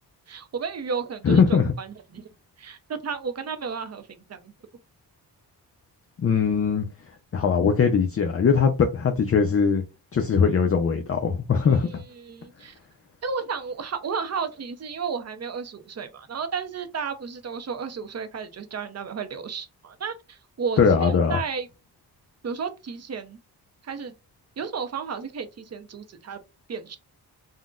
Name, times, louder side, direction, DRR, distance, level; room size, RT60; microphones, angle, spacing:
voice 1, 0.3-2.3 2.6-4.0 4.3-4.5 11.7-12.7 13.2-21.7 22.4-23.4 23.8-24.1 24.6-26.4 26.7-27.0, right 5 dB, 40° right, 0.7 m, -33 dB
voice 2, 1.2-1.7 6.2-6.9 7.3-9.8 10.1-12.0 20.8-21.4, left 6 dB, 35° left, 0.5 m, -21 dB
3.7 x 2.1 x 2.4 m
cardioid pair, 90°, 40 cm